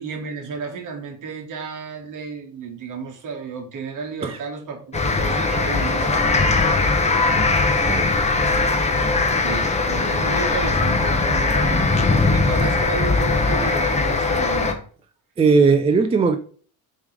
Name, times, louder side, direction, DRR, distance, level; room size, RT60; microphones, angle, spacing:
voice 1, 0.0-6.2 9.3-14.8, right 5 dB, 50° right, 1.8 m, -32 dB
sound 1, 4.9-14.7, left 3 dB, 15° left, 0.8 m, -20 dB
voice 2, 15.4-16.4, right 4 dB, 15° right, 0.3 m, -17 dB
7.1 x 3.2 x 5.0 m
cardioid pair, 155°, 40 cm